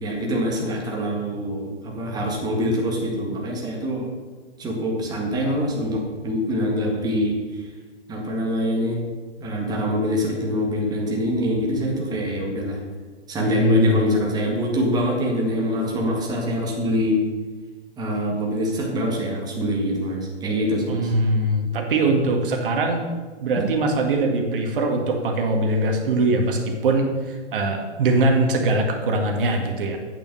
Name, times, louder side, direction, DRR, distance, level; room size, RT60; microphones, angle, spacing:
voice 1, 0.0-4.1 4.6-7.7 8.1-9.0 9.4-12.8 13.3-17.2 18.0-21.1 23.5-23.6, equal, 10° right, -1 dB, 1.8 m, -24 dB
voice 2, 13.4-14.0 20.9-23.1 23.4-30.0, right 2 dB, 50° right, 3 dB, 2.1 m, -22 dB
9.0 x 7.1 x 6.9 m, 1.4 s
hypercardioid pair, 140°, 35 cm